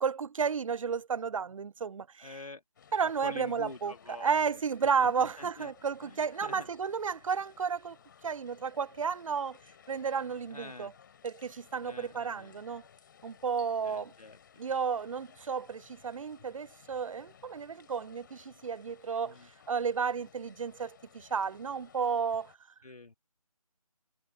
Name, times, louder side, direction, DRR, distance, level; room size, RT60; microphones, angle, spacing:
voice 1, 0.0-2.3 2.9-3.9 4.2-8.0 8.2-9.6 9.9-10.9 11.2-12.8 13.2-14.1 14.6-19.4 19.7-22.5, right 6 dB, 60° right, 0.4 m, -32 dB
voice 2, 2.2-2.6 3.0-5.7 6.0-6.7 10.5-11.0 11.8-12.6 13.8-14.9 19.2-19.5 22.8-23.2, left 3 dB, 80° left, 2.2 m, -47 dB
sound 1, 2.7-22.5, left 8 dB, 35° left, 3.2 m, -59 dB
figure-of-eight pair, 155°, 19 cm